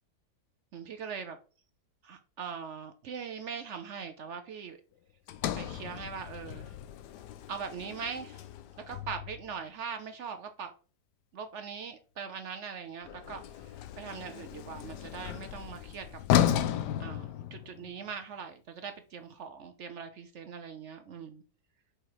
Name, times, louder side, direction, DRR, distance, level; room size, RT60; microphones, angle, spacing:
voice 1, 0.7-1.4 2.0-4.8 5.6-6.7 7.5-8.4 8.9-10.7 11.3-16.2 17.0-21.4, right 6 dB, 60° right, 0.8 m, -41 dB
Sliding door, 5.3-9.5 13.0-18.0, left 11 dB, 90° left, 1.2 m, -34 dB
5.1 x 4.3 x 4.7 m
omnidirectional pair, 1.7 m